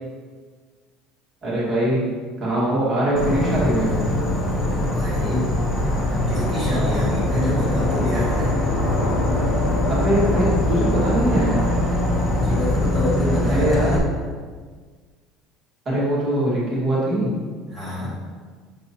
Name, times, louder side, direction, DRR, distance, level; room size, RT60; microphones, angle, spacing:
voice 1, 1.4-2.0 2.4-3.9 9.9-11.6 13.5-14.1 15.9-17.3, right 1 dB, 30° right, -7 dB, 2.0 m, -22 dB
Insect / Frog, 3.2-14.0, left 1 dB, 20° left, 1.1 m, -22 dB
voice 2, 4.9-5.5 6.3-8.5 9.1-9.2 12.3-14.0 17.7-18.2, equal, ahead, -10 dB, 1.9 m, -27 dB
6.8 x 6.2 x 2.9 m, 1.5 s
cardioid pair, 155°, 0 cm